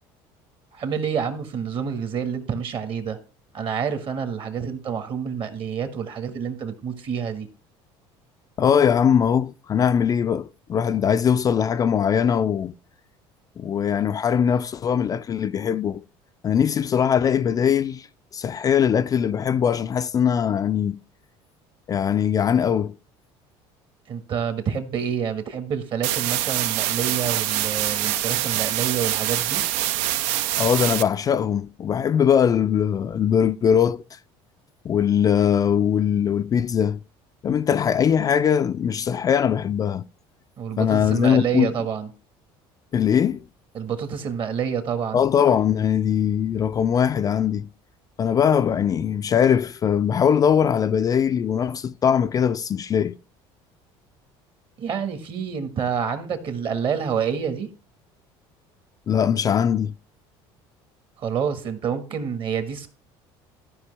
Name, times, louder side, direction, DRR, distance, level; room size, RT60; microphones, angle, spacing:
voice 1, 0.7-3.2 3.5-7.5 24.1-29.6 40.6-42.1 43.7-45.2 54.8-57.7 61.2-62.9, right 7 dB, 50° right, 1.6 m, -28 dB
voice 2, 8.6-12.7 13.6-16.0 16.4-18.1 18.3-21.0 21.9-22.9 30.6-34.0 34.8-37.0 37.4-40.0 40.8-41.7 42.9-43.4 45.1-47.7 48.2-53.2 59.1-59.9, left 8 dB, 30° left, 0.3 m, -21 dB
sound 1, 26.0-31.0, right 13 dB, 80° right, 0.5 m, -25 dB
13.5 x 5.1 x 3.3 m
supercardioid pair, 110°, 11 cm